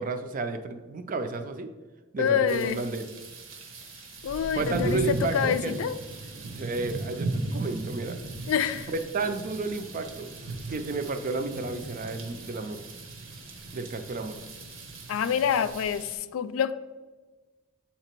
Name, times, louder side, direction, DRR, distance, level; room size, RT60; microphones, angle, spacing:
voice 1, 0.0-1.7 2.1-3.1 4.5-5.8 6.5-8.2 8.9-10.3 10.7-12.8 13.7-14.3, right 3 dB, 40° right, 8 dB, 0.4 m, -32 dB
voice 2, 2.2-2.8 4.2-6.0 8.5-8.9 15.1-16.7, left 8 dB, 90° left, 13 dB, 0.3 m, -26 dB
sound 1, 2.5-16.2, right 2 dB, 70° right, 1.0 m, -37 dB
7.5 x 2.9 x 4.4 m, 1.3 s
head